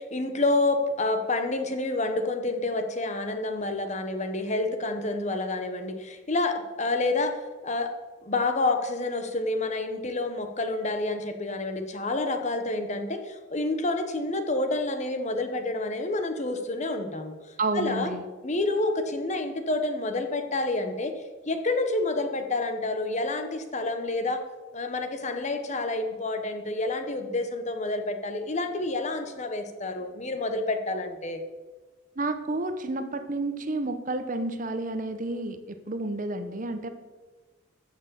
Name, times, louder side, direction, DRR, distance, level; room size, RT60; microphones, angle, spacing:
voice 1, 0.0-7.3 7.6-7.9 8.3-17.3 17.7-18.1 18.4-21.1 21.5-24.4 24.7-31.4, left 2 dB, 35° left, 7 dB, 1.1 m, -28 dB
voice 2, 17.6-18.2 32.2-36.9, right 2 dB, 40° right, 9 dB, 0.9 m, -30 dB
14.0 x 6.4 x 7.1 m, 1.3 s
head